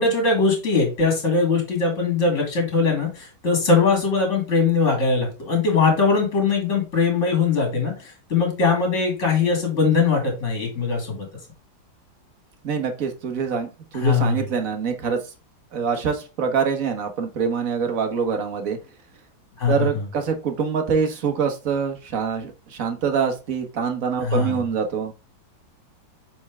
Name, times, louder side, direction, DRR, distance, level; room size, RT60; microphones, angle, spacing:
voice 1, 0.0-11.3 13.9-14.4 19.6-20.0 24.2-24.6, left 4 dB, 40° left, 2 dB, 2.8 m, -21 dB
voice 2, 12.6-13.7 13.9-15.2 15.7-18.8 19.7-25.1, right 6 dB, 50° right, 5 dB, 1.4 m, -25 dB
7.2 x 4.3 x 3.5 m, 0.31 s
omnidirectional pair, 2.1 m